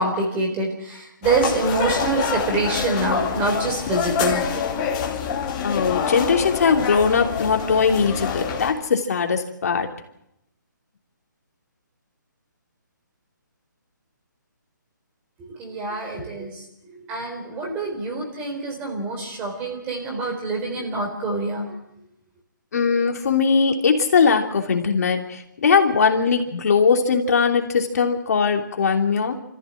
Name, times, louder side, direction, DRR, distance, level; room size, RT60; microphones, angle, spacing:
voice 1, 0.0-4.4 15.6-16.6 17.1-21.7, right 3 dB, 15° right, 2 dB, 4.1 m, -25 dB
sound 1, 1.2-8.7, left 7 dB, 20° left, 2.8 m, -26 dB
voice 2, 5.6-9.9 22.7-29.3, left 5 dB, 50° left, 4 dB, 3.0 m, -20 dB
28.5 x 14.5 x 7.8 m, 0.81 s
hypercardioid pair, 165°, 11 cm